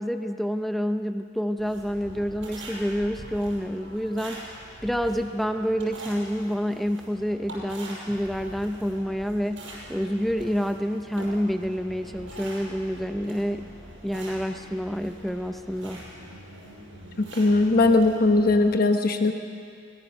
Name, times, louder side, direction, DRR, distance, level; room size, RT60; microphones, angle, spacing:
voice 1, 0.0-13.7 14.0-16.0, equal, ahead, 7 dB, 0.6 m, -28 dB
sound 1, 1.6-18.7, right 1 dB, 65° right, 5.7 m, -43 dB
voice 2, 17.2-19.3, left 2 dB, 45° left, 5 dB, 1.1 m, -20 dB
21.5 x 18.0 x 6.8 m, 2.4 s
head